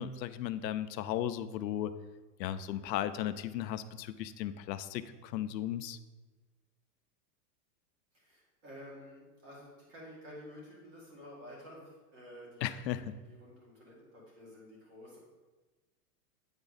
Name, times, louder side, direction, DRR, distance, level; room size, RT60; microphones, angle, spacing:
voice 1, 0.0-1.9 2.4-6.0 12.6-13.1, left 11 dB, 90° left, 12 dB, 0.6 m, -36 dB
voice 2, 8.1-12.7 13.0-15.2, equal, 30° right, -4 dB, 2.1 m, -51 dB
8.9 x 3.6 x 4.0 m, 1.2 s
supercardioid pair, 165°, 49 cm